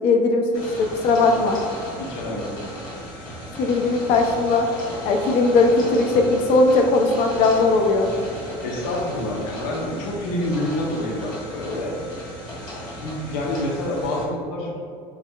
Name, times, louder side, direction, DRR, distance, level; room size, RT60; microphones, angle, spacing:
voice 1, 0.0-1.6 3.6-4.7 5.0-8.1, left 3 dB, 50° left, 3 dB, 0.5 m, -19 dB
sound 1, 0.5-14.3, equal, 30° left, 1.2 m, -36 dB
voice 2, 2.0-2.6 8.6-12.0 13.0-14.8, left 1 dB, 80° left, -1 dB, 0.9 m, -27 dB
4.6 x 3.4 x 2.2 m, 2.4 s
cardioid pair, 155°, 12 cm